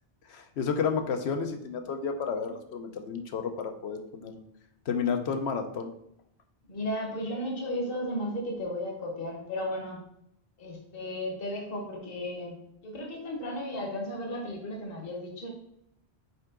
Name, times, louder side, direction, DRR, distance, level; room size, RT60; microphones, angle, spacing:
voice 1, 0.3-4.4 4.9-5.9, left 6 dB, 80° left, 6 dB, 1.0 m, -31 dB
voice 2, 6.7-10.0 10.6-15.5, left 1 dB, 60° left, 0 dB, 1.4 m, -34 dB
5.4 x 4.6 x 3.7 m, 0.75 s
omnidirectional pair, 1.1 m